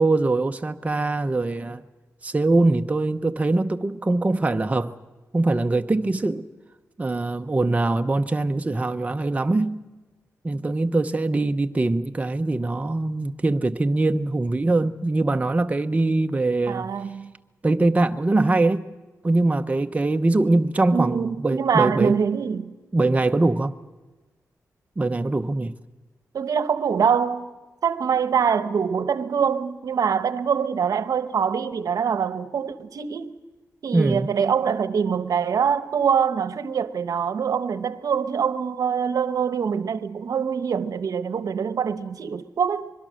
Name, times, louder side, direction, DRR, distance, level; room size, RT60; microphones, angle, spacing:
voice 1, 0.0-1.8 2.2-4.9 5.3-6.5 7.0-9.8 10.4-16.9 17.6-18.9 19.2-22.2 22.9-23.7 25.0-25.7 33.9-34.3, right 2 dB, 25° right, 0.8 m, -22 dB
voice 2, 16.7-17.3 20.9-22.7 26.3-27.5 27.8-33.3 33.8-42.9, right 7 dB, 80° right, 0.9 m, -24 dB
24.5 x 22.0 x 6.4 m
wide cardioid pair, 95°, 6 cm